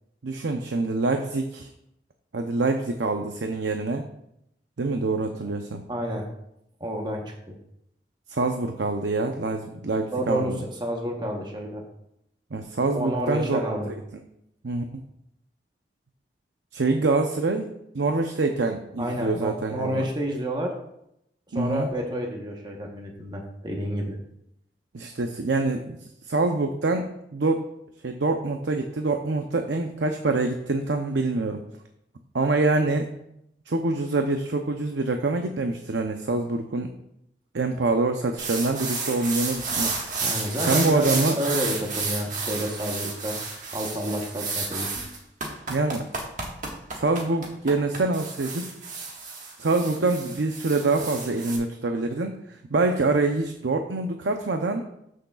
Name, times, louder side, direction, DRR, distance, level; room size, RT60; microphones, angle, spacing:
voice 1, 0.2-1.7 2.3-4.0 4.8-5.8 8.3-10.6 12.5-13.6 13.9-14.2 14.6-15.0 16.7-20.1 21.5-21.9 24.9-26.0 26.3-27.7 28.0-31.6 32.3-33.1 33.7-36.9 37.5-40.0 40.6-41.4 45.7-46.0 46.9-48.7 49.6-54.8, right 3 dB, 85° right, 4 dB, 0.7 m, -25 dB
voice 2, 5.9-6.2 6.8-7.6 10.1-11.8 12.9-13.9 19.0-20.7 21.5-24.2 40.2-43.4 43.7-44.9, equal, 25° right, 0 dB, 1.0 m, -29 dB
sound 1, 38.4-51.6, right 4 dB, 45° right, 1.5 m, -31 dB
13.0 x 6.4 x 2.4 m, 0.79 s
head